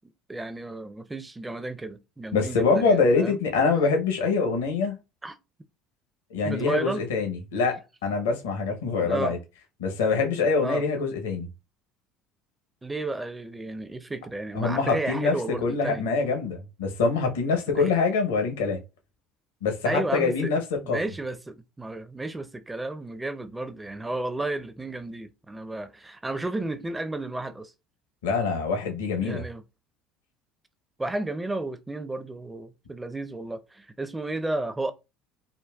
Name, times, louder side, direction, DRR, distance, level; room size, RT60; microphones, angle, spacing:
voice 1, 0.3-3.4 5.2-5.4 6.4-7.1 9.0-9.4 10.6-10.8 12.8-16.0 17.8-17.9 19.9-20.5 20.8-27.7 29.2-29.6 31.0-34.9, right 2 dB, 15° right, 0.4 m, -33 dB
voice 2, 2.3-4.9 6.3-9.4 9.8-11.5 14.5-18.8 19.6-20.6 20.9-21.0 28.2-29.4, left 4 dB, 80° left, 0.7 m, -24 dB
3.8 x 2.2 x 2.2 m
hypercardioid pair, 65°, 0 cm